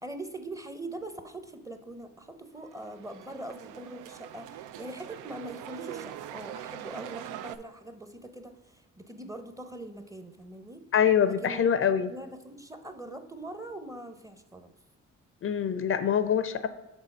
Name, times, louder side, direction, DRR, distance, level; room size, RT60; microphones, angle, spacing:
voice 1, 0.0-10.8 11.3-11.6 12.1-14.7, right 1 dB, 10° right, 9 dB, 0.7 m, -42 dB
sound 1, 2.6-7.6, right 11 dB, 85° right, 0.5 m, -43 dB
voice 2, 10.9-12.1 15.4-16.7, left 8 dB, 45° left, 12 dB, 0.5 m, -24 dB
6.2 x 3.8 x 5.4 m, 1.0 s
cardioid pair, 90°, 30 cm